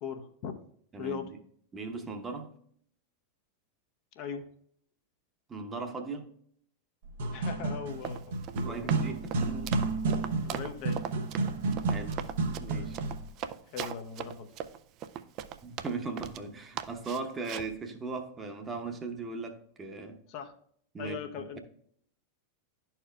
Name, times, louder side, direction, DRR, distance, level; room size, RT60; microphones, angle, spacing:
voice 1, 0.0-0.5 1.0-1.3 4.2-4.5 7.3-8.4 10.4-11.0 13.7-14.5 20.3-20.5 21.0-21.6, left 6 dB, 45° left, 5 dB, 0.7 m, -39 dB
voice 2, 0.9-1.4 1.7-2.5 5.5-6.3 8.5-9.9 11.7-12.3 12.6-13.0 15.6-20.2 20.9-21.2, right 3 dB, 20° right, 5 dB, 0.9 m, -38 dB
sound 1, 7.0-13.3, right 3 dB, 60° right, 0.8 m, -31 dB
Run, 7.9-16.5 16.8-17.7, right 9 dB, 40° right, 0.4 m, -39 dB
12.0 x 4.4 x 2.3 m, 0.63 s
figure-of-eight pair, 90°, 0 cm